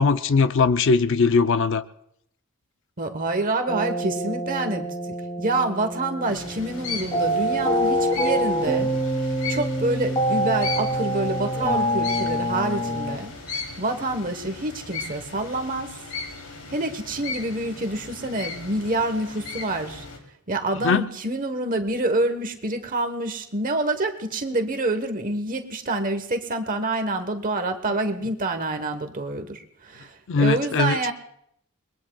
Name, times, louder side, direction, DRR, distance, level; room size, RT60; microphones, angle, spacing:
voice 1, 0.0-1.8 20.8-21.1 30.3-31.0, left 4 dB, 60° left, 0.5 m, -20 dB
voice 2, 3.0-8.9 9.5-15.9 16.7-20.0 20.5-31.1, right 2 dB, 40° right, 1.2 m, -27 dB
sound 1, 3.7-13.2, right 1 dB, 20° left, 2.8 m, -26 dB
sound 2, 6.3-20.2, left 4 dB, 90° left, 2.9 m, -37 dB
29.5 x 21.5 x 2.3 m
head